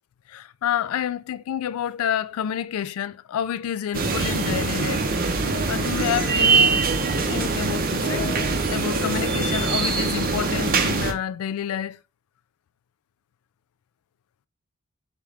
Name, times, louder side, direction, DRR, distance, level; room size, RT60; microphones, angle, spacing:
voice 1, 0.3-5.1 5.7-6.8 7.3-8.4 8.7-12.0, left 9 dB, 85° left, 0.3 m, -28 dB
sound 1, 3.9-11.1, right 4 dB, 45° right, 0.6 m, -23 dB
sound 2, 4.9-5.8 8.0-9.6, left 3 dB, 55° left, 0.9 m, -38 dB
3.6 x 2.9 x 3.3 m
head